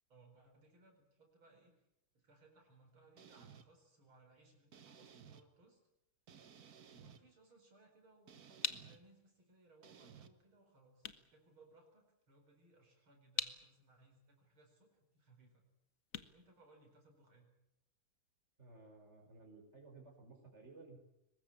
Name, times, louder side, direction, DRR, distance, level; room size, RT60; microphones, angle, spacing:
voice 1, 0.1-1.7 2.1-5.8 6.9-15.7 16.3-17.5, right 2 dB, 70° right, 2 dB, 5.4 m, -66 dB
sound 1, 3.2-3.7 4.7-5.4 6.3-7.2 8.3-9.0 9.8-10.3, right 7 dB, 50° right, 1.7 m, -58 dB
sound 2, 8.2-17.4, left 7 dB, 45° left, 1.4 m, -48 dB
voice 2, 18.6-21.0, right 3 dB, 30° right, 2 dB, 5.6 m, -57 dB
23.0 x 20.0 x 8.7 m, 0.82 s
omnidirectional pair, 2.4 m